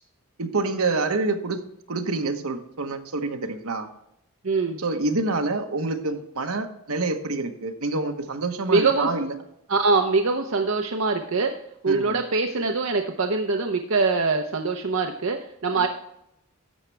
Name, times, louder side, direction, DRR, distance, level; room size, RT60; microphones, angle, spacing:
voice 1, 0.4-1.6 1.9-3.9 4.8-9.3 11.9-12.2 15.7-15.9, right 3 dB, 80° right, 6 dB, 1.1 m, -27 dB
voice 2, 4.4-4.8 8.7-9.1 9.7-11.5 11.8-15.9, right 4 dB, 65° right, 4 dB, 0.7 m, -23 dB
11.5 x 7.3 x 3.3 m, 0.79 s
head